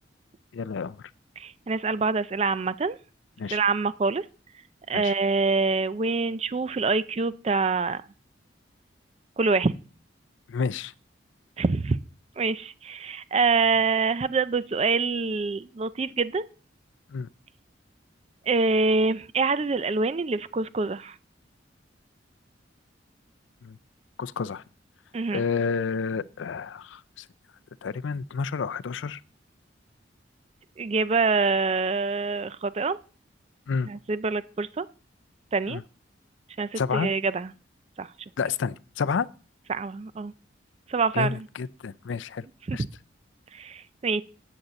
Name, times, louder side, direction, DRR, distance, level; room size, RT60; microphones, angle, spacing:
voice 1, 0.5-1.0 3.4-3.6 4.9-5.1 10.5-10.9 17.1-17.3 23.6-23.8 24.2-24.6 25.3-27.3 27.8-29.2 33.7-33.9 35.7-35.8 36.8-37.1 38.4-39.3 41.1-42.4 42.7-42.8, left 5 dB, 75° left, 0.4 m, -30 dB
voice 2, 1.4-3.0 3.5-4.3 4.9-8.0 9.4-9.7 11.6-12.0 12.4-16.4 18.5-21.2 25.1-25.4 30.8-33.0 33.9-34.9 35.5-35.8 36.6-37.5 38.0-38.1 39.7-40.3 40.9-41.5 42.7-42.8 43.5-44.2, right 4 dB, 35° right, 0.4 m, -25 dB
8.4 x 6.4 x 6.9 m
head